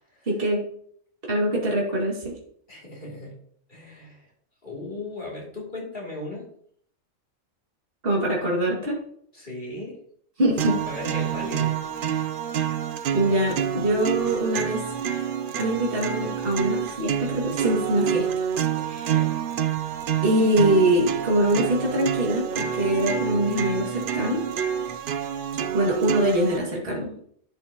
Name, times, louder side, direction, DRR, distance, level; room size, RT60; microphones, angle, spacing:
voice 1, 0.3-0.6 1.3-2.4 8.0-9.0 10.4-10.8 13.1-14.8 15.6-18.5 18.8-19.2 20.2-24.4 25.7-27.3, right 1 dB, 40° right, -3 dB, 2.5 m, -23 dB
voice 2, 2.7-3.4 3.7-4.3 4.6-6.5 9.3-10.0 10.9-11.8 19.0-19.3, left 2 dB, 35° left, -4 dB, 3.2 m, -37 dB
sound 1, 10.6-26.6, right 8 dB, 60° right, 0.5 m, -28 dB
11.5 x 6.3 x 2.9 m, 0.63 s
omnidirectional pair, 1.4 m